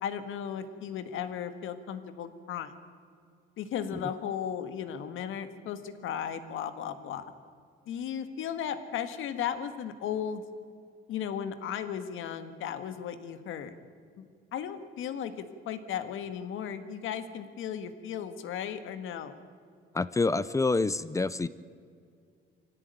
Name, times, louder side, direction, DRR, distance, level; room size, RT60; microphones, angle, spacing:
voice 1, 0.0-2.7 3.6-7.3 7.9-10.4 11.1-13.7 14.2-14.3 14.5-19.4, left 8 dB, 75° left, 10 dB, 1.8 m, -35 dB
voice 2, 19.9-21.5, left 3 dB, 15° left, 16 dB, 0.5 m, -27 dB
24.5 x 17.0 x 9.2 m, 2.2 s
cardioid pair, 150°, 21 cm